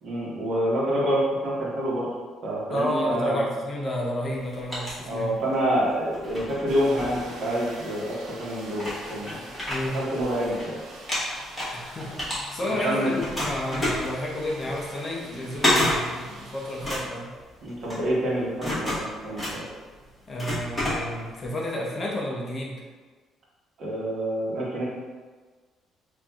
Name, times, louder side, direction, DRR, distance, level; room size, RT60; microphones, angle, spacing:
voice 1, 0.0-2.1 2.4-3.4 5.1-9.5 9.9-10.8 12.7-13.1 15.3-15.4 17.6-19.6 23.8-24.8, right 1 dB, 45° right, -6 dB, 1.1 m, -27 dB
voice 2, 2.7-5.4 9.6-10.1 11.7-17.3 20.3-22.8, left 1 dB, 25° left, -2 dB, 0.5 m, -31 dB
sound 1, 4.3-5.6 6.1-7.8 8.4-8.5 8.7-10.6 10.9-12.9 13.2-21.5, left 1 dB, 5° left, 1.1 m, -30 dB
sound 2, 6.7-16.9, right 1 dB, 80° right, 0.7 m, -45 dB
5.7 x 2.5 x 2.3 m, 1.4 s
cardioid pair, 175°, 0 cm